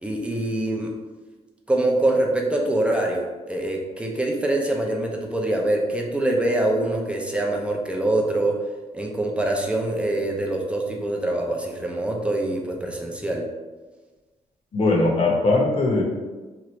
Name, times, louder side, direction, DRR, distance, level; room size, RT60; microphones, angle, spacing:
voice 1, 0.0-0.9 1.7-8.5 8.9-13.4, right 1 dB, 10° right, 0 dB, 0.4 m, -24 dB
voice 2, 14.7-16.0, left 2 dB, 45° left, -2 dB, 0.8 m, -20 dB
2.9 x 2.4 x 3.0 m, 1.3 s
cardioid pair, 140°, 13 cm